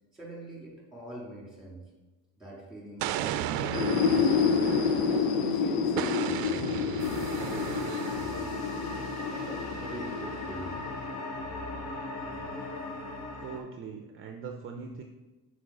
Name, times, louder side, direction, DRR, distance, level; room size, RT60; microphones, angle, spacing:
voice 1, 0.1-1.9 2.4-8.9 9.3-10.8 12.5-12.8, right 1 dB, ahead, -3 dB, 2.5 m, -44 dB
Explosion, 3.0-5.5 6.0-8.5, right 11 dB, 80° right, 0.5 m, -35 dB
sound 1, 3.6-11.2, left 6 dB, 85° left, 0.8 m, -29 dB
sound 2, 7.0-13.6, left 2 dB, 45° left, 1.3 m, -38 dB
voice 2, 13.4-15.0, right 5 dB, 35° right, 5 dB, 0.6 m, -41 dB
6.2 x 4.9 x 4.9 m, 1.1 s
cardioid pair, 125°, 35 cm